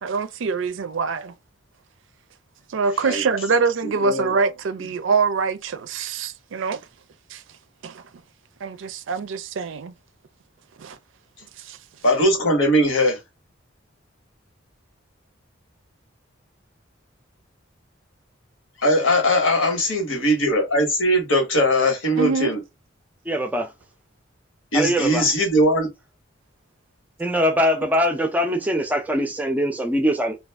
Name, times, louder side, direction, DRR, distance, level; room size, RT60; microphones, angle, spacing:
voice 1, 0.0-1.3 2.7-6.8 7.3-7.4 7.8-8.0 8.6-9.9 10.8-11.0 11.6-11.8 22.2-22.5, right 5 dB, 70° right, 0.4 m, -24 dB
voice 2, 4.0-4.3 12.0-13.2 18.8-22.6 24.7-25.9, equal, 85° left, 1.2 m, -20 dB
voice 3, 23.3-23.7 24.7-25.2 27.2-30.4, equal, 10° right, 0.4 m, -22 dB
2.4 x 2.3 x 3.4 m
head